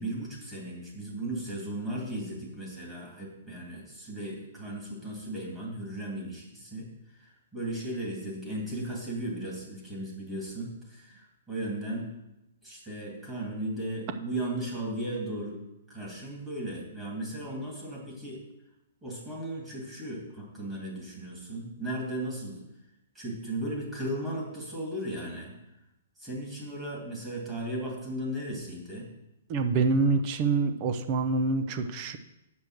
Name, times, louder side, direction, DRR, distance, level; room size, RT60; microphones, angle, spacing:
voice 1, 0.0-12.1 12.6-15.6 15.9-18.4 19.0-22.6 23.1-25.5 26.2-29.1, right 1 dB, 10° right, -4 dB, 2.2 m, -36 dB
voice 2, 29.5-32.2, right 4 dB, 35° right, 8 dB, 0.7 m, -26 dB
7.9 x 5.3 x 6.4 m, 0.90 s
hypercardioid pair, 150°, 0 cm